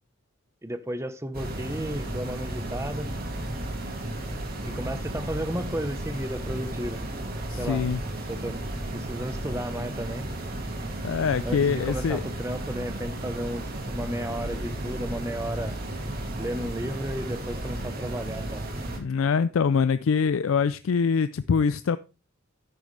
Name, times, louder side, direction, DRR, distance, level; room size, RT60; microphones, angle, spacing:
voice 1, 0.6-3.1 4.7-7.0 7.6-7.9 8.3-8.6 8.9-10.3 11.4-15.8 16.4-18.7, right 1 dB, 15° right, 0.9 m, -33 dB
sound 1, 1.3-19.0, right 1 dB, 50° right, 2.5 m, -34 dB
voice 2, 7.5-8.0 11.0-12.2 19.0-22.0, left 6 dB, 80° left, 0.4 m, -24 dB
10.5 x 9.4 x 3.2 m
head